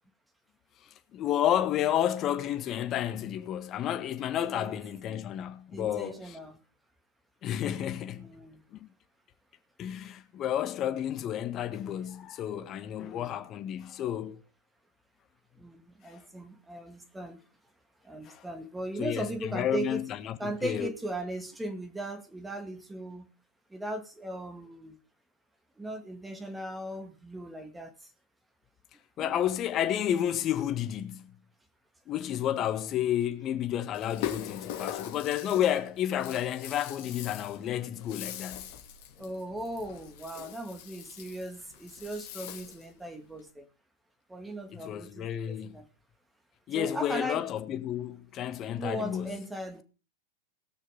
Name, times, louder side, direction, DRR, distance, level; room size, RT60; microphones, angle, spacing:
voice 1, 0.8-6.4 7.4-8.3 8.7-8.9 9.8-14.4 18.3-18.4 19.0-20.9 29.2-31.3 32.1-38.7 44.7-45.8 46.7-49.4, left 10 dB, 35° left, 1.6 m, -31 dB
voice 2, 4.5-4.8 5.1-5.2 5.7-6.6 8.1-8.6 13.0-13.4 15.6-17.4 18.0-20.0 20.4-23.3 23.7-25.0 25.8-27.9 29.2-29.4 39.2-43.7 44.3-45.9 46.7-47.4 48.7-49.8, right 1 dB, 10° right, 2.3 m, -38 dB
Rattle (instrument), 33.9-42.9, left 11 dB, 50° left, 2.9 m, -42 dB
18.5 x 6.5 x 5.3 m
hypercardioid pair, 105°, 0 cm